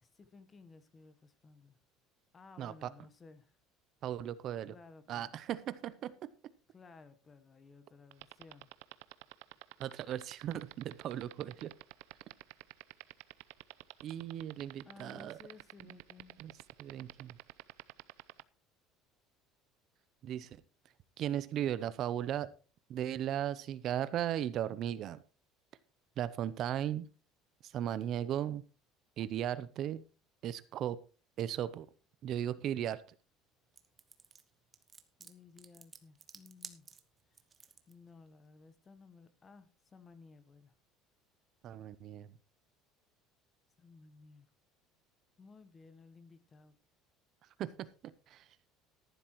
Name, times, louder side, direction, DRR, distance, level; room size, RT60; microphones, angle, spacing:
voice 1, 0.0-1.8 2.3-3.5 4.7-5.4 6.7-8.7 14.8-16.4 35.2-36.9 37.9-40.7 43.8-44.5 45.4-46.8, left 4 dB, 20° left, 12 dB, 1.0 m, -57 dB
voice 2, 2.6-2.9 4.0-4.7 5.1-6.3 9.8-11.7 14.0-15.4 16.4-16.5 16.8-17.4 20.2-20.5 21.2-22.5 22.9-25.2 26.2-27.1 27.6-28.6 29.2-30.0 30.4-31.0 31.4-31.9 32.2-33.0 41.6-42.3 47.6-47.9 48.3-48.4, right 11 dB, 40° right, 16 dB, 0.6 m, -36 dB
sound 1, 8.1-18.4, right 23 dB, 85° right, 0.6 m, -48 dB
sound 2, 33.8-37.9, right 5 dB, 15° right, 1.0 m, -53 dB
14.5 x 11.5 x 3.0 m, 0.35 s
cardioid pair, 175°, 0 cm